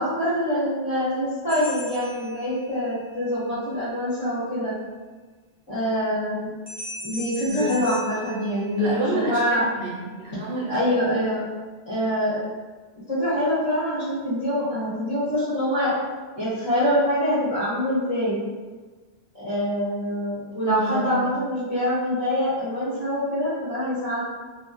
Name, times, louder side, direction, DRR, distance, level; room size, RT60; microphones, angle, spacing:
voice 1, 0.0-4.8 5.7-6.5 7.0-9.6 10.7-11.4 11.8-12.4 13.1-15.9 16.4-18.4 19.3-24.2, equal, 20° left, -13 dB, 0.7 m, -25 dB
sound 1, 1.5-3.0 6.7-9.2, left 1 dB, 30° right, 0.7 m, -39 dB
voice 2, 7.5-8.4 8.8-10.7 20.6-21.3, right 1 dB, 60° right, -4 dB, 0.7 m, -29 dB
2.3 x 2.1 x 2.5 m, 1.4 s
omnidirectional pair, 1.1 m